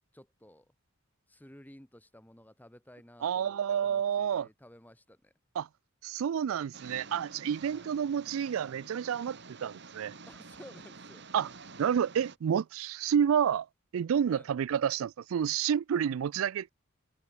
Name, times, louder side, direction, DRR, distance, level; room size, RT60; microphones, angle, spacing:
voice 1, 0.1-0.7 1.3-5.3 7.7-7.9 10.3-11.3 14.3-14.5, left 1 dB, 10° left, 2.6 m, -54 dB
voice 2, 3.2-4.5 5.6-5.7 6.0-10.1 11.3-11.5 11.8-13.7 13.9-16.7, right 8 dB, 85° right, 0.4 m, -29 dB
sound 1, 6.7-12.4, right 4 dB, 60° right, 2.1 m, -49 dB
head